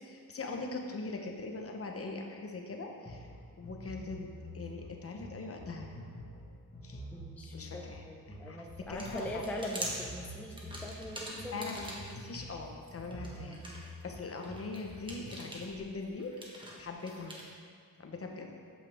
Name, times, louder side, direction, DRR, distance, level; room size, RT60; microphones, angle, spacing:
voice 1, 0.0-3.3 3.6-5.9 6.8-7.0 7.5-9.4 11.5-11.8 12.1-17.4 18.0-18.5, left 3 dB, 45° left, 2 dB, 0.8 m, -42 dB
sound 1, 3.1-15.5, equal, 25° left, 1.3 m, -48 dB
voice 2, 7.1-11.9 13.4-13.7, left 1 dB, 5° left, 0 dB, 0.5 m, -42 dB
sound 2, 8.8-12.4 12.8-17.5, right 1 dB, 15° right, 1.2 m, -44 dB
8.6 x 7.4 x 3.5 m, 2.1 s
wide cardioid pair, 165°, 33 cm